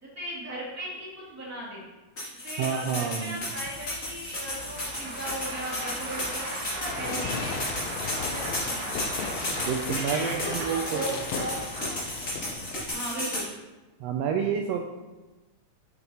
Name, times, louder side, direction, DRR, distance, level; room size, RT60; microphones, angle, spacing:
voice 1, 0.0-1.9 2.4-7.7 8.1-9.4 9.9-12.3 12.9-13.5, right 1 dB, 5° right, -7 dB, 2.0 m, -37 dB
sound 1, 2.2-13.5, left 1 dB, 30° left, 2.3 m, -34 dB
voice 2, 2.6-3.5 9.6-11.5 14.0-14.8, right 7 dB, 85° right, 3 dB, 1.4 m, -29 dB
Applause / Crowd, 3.3-12.9, right 2 dB, 60° right, 2.5 m, -39 dB
Fireworks, 6.8-12.8, left 6 dB, 80° left, 1.6 m, -37 dB
7.8 x 7.8 x 2.8 m, 1.1 s
omnidirectional pair, 3.4 m